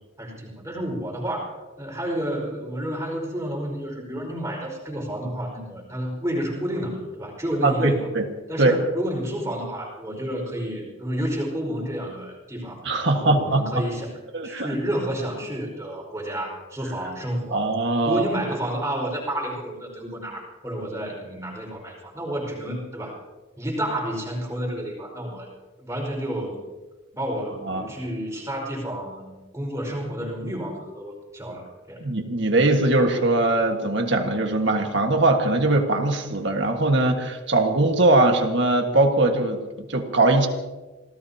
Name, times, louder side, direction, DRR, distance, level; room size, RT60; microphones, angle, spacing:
voice 1, 0.2-8.1 8.5-14.1 14.4-17.7 18.0-23.2 23.6-25.5 25.8-26.6 27.2-32.0, right 1 dB, 15° right, -2 dB, 5.0 m, -30 dB
voice 2, 7.6-8.2 8.6-8.7 12.8-13.6 14.3-14.7 17.5-18.3 27.6-27.8 32.0-40.5, right 2 dB, 60° right, 3 dB, 1.7 m, -21 dB
27.0 x 17.5 x 2.9 m, 1.2 s
head